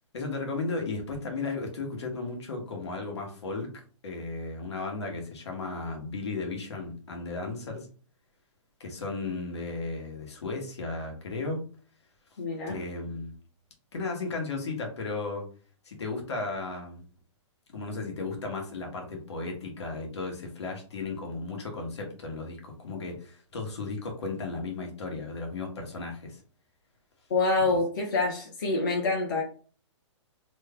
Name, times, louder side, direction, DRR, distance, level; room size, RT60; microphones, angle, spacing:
voice 1, 0.1-3.7 4.0-7.9 8.8-11.6 12.7-13.3 13.9-15.4 15.8-17.0 17.7-26.4 27.7-27.8, left 3 dB, 60° left, 2 dB, 1.2 m, -35 dB
voice 2, 12.4-12.8 27.3-29.4, left 3 dB, 40° left, -2 dB, 0.8 m, -26 dB
3.1 x 2.2 x 3.5 m, 0.40 s
hypercardioid pair, 180°, 16 cm